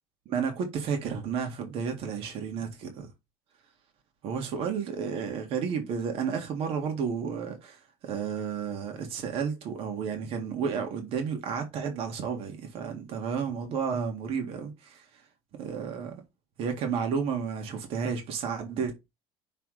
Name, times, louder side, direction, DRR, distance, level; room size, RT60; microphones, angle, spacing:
voice 1, 0.2-3.1 4.2-15.0 15.6-16.2 16.6-18.9, right 6 dB, 55° right, 1.8 m, -32 dB
5.9 x 3.5 x 4.8 m
cardioid pair, 130°, 11 cm